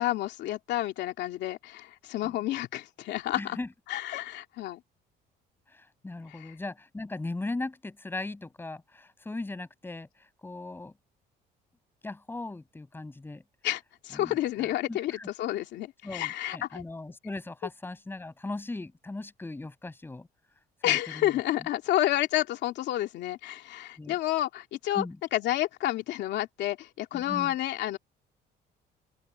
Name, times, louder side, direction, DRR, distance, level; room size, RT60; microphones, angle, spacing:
voice 1, 0.0-3.6 3.9-4.8 6.3-6.5 13.6-16.8 20.8-25.1 25.3-28.0, left 14 dB, 75° left, 2.6 m, -30 dB
voice 2, 3.4-3.7 5.7-10.1 10.4-10.9 12.0-13.4 14.1-15.3 16.0-20.3 20.8-21.3 24.0-24.2 24.9-25.2 27.1-27.5, left 2 dB, 10° left, 5.9 m, -38 dB
open air
cardioid pair, 145°, 18 cm